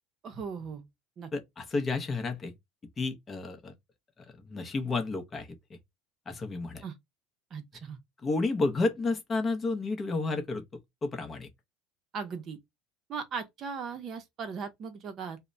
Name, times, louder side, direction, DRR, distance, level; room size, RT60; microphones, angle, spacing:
voice 1, 0.2-0.9 1.2-1.3 6.8-6.9 7.5-8.0 12.1-12.6 13.1-15.4, right 5 dB, 40° right, 0.6 m, -38 dB
voice 2, 1.3-2.5 3.0-3.7 4.2-5.5 6.3-6.8 8.2-10.6 11.0-11.5, left 3 dB, 25° left, 0.6 m, -31 dB
2.1 x 2.1 x 3.7 m
supercardioid pair, 130°, 0 cm